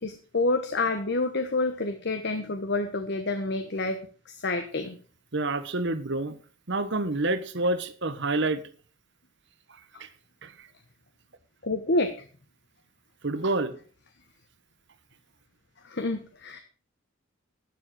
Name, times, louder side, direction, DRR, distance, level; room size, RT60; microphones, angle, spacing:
voice 1, 0.0-4.0 4.3-5.0 11.6-12.1 15.8-16.6, left 2 dB, 55° left, 1.2 m, -28 dB
voice 2, 5.3-6.4 6.7-8.6 9.7-10.1 10.4-10.7 13.2-13.7, right 2 dB, 60° right, 1.3 m, -28 dB
12.5 x 7.5 x 6.4 m
head